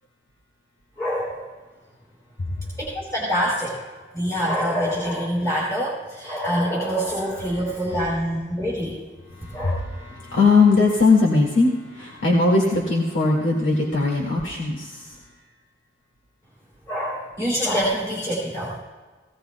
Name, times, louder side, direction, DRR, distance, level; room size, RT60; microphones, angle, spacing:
voice 1, 1.0-1.4 2.8-3.8 4.1-9.0 9.5-9.7 16.9-18.8, equal, 20° left, -7 dB, 3.3 m, -25 dB
voice 2, 9.3-15.2, left 3 dB, 85° left, -3 dB, 2.1 m, -20 dB
19.0 x 17.0 x 2.3 m, 1.4 s
head